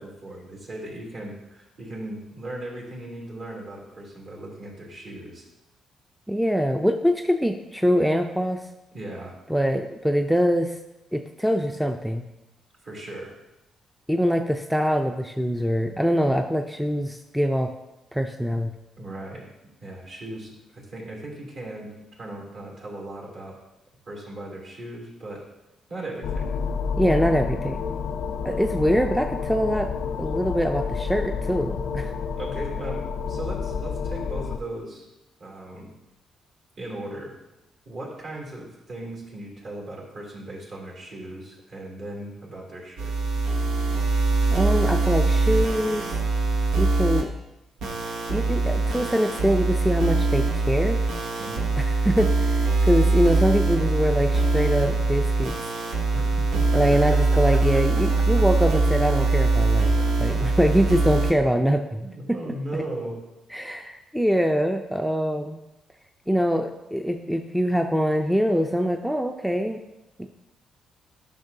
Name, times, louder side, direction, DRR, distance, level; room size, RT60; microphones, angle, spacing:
voice 1, 0.0-5.4 8.9-9.3 12.8-13.4 19.0-19.5 19.8-23.6 24.1-25.4 25.9-26.5 32.4-35.1 35.4-35.9 36.8-37.3 37.8-43.1 51.4-51.7 56.1-56.2 56.5-57.0 57.3-57.8 58.2-58.4 62.0-63.2, right 1 dB, 55° right, -2 dB, 2.9 m, -37 dB
voice 2, 6.3-8.6 9.5-10.8 11.1-12.2 14.1-17.7 18.1-18.7 27.0-27.8 28.4-29.9 30.2-32.1 44.5-46.2 46.8-47.3 48.3-51.0 51.8-55.5 56.7-59.9 60.2-62.4 62.7-62.8 63.5-65.6 66.3-69.8 70.2-70.3, equal, ahead, 5 dB, 0.4 m, -24 dB
sound 1, 26.2-34.6, left 5 dB, 80° left, 0.5 m, -29 dB
sound 2, 43.0-47.2 47.8-61.3, right 3 dB, 90° right, 1.0 m, -22 dB
10.5 x 5.8 x 2.7 m, 0.95 s
cardioid pair, 90°, 0 cm